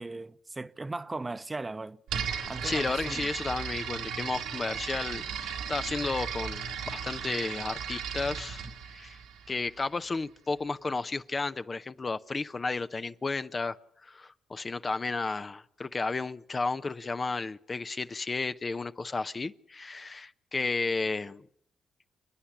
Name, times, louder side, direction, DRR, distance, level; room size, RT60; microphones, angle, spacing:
voice 1, 0.0-2.0 2.5-3.3, right 2 dB, 25° right, 1.0 m, -38 dB
sound 1, 2.1-9.9, right 7 dB, 85° right, 2.3 m, -36 dB
voice 2, 2.6-9.2 9.5-13.8 14.0-21.4, left 3 dB, 40° left, 0.8 m, -33 dB
29.5 x 10.0 x 9.8 m
hypercardioid pair, 45°, 0 cm